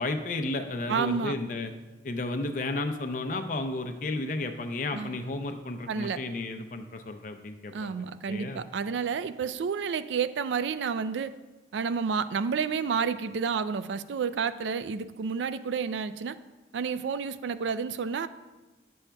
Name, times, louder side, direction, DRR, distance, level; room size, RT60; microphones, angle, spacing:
voice 1, 0.0-1.7 2.0-8.6, left 2 dB, 45° left, 7 dB, 0.5 m, -33 dB
voice 2, 0.9-1.3 4.9-5.2 5.9-6.2 7.7-11.3 11.7-16.4 16.7-18.3, right 6 dB, 85° right, 13 dB, 0.3 m, -30 dB
9.9 x 7.0 x 2.3 m, 1.2 s
head